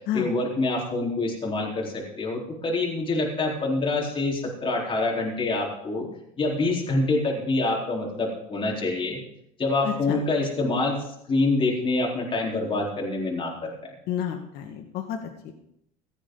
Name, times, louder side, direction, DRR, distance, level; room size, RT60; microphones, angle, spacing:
voice 1, 0.1-6.1 6.4-9.2 9.6-13.9, left 2 dB, 30° left, -2 dB, 4.1 m, -26 dB
voice 2, 9.8-10.2 14.1-15.2 15.4-15.5, left 9 dB, 65° left, 4 dB, 1.7 m, -30 dB
16.5 x 13.0 x 3.9 m, 0.75 s
supercardioid pair, 110°, 18 cm